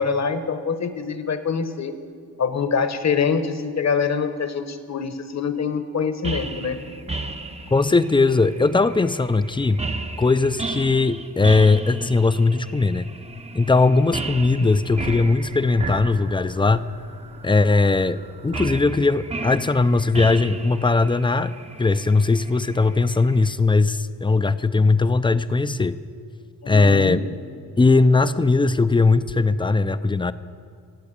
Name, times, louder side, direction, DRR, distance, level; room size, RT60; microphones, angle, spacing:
voice 1, 0.0-1.9 2.4-6.8 26.6-27.2, left 5 dB, 45° left, 10 dB, 1.1 m, -24 dB
sound 1, 6.2-23.5, right 3 dB, 15° right, 0.7 m, -35 dB
voice 2, 7.7-9.8 10.2-13.1 13.5-16.9 17.4-18.2 18.4-26.0 26.7-27.2 27.8-30.3, left 3 dB, 15° left, 13 dB, 0.5 m, -19 dB
15.5 x 8.3 x 8.2 m, 2.2 s
cardioid pair, 65°, 38 cm